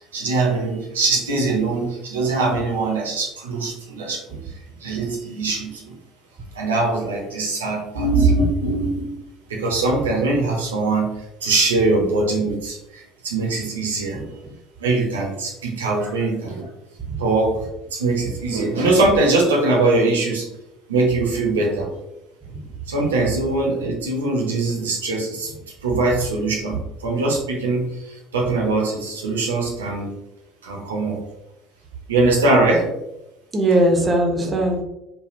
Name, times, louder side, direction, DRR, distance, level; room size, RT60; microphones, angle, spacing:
voice 1, 0.1-6.0 6.5-9.2 9.5-14.2 14.8-16.7 17.2-20.5 20.9-22.0 22.9-25.5 25.8-30.1 30.6-31.2 32.1-32.9, right 3 dB, 80° right, -1 dB, 0.7 m, -22 dB
voice 2, 33.5-34.8, right 1 dB, 25° right, 2 dB, 0.7 m, -20 dB
3.3 x 2.3 x 2.5 m, 0.88 s
figure-of-eight pair, 65°, 0 cm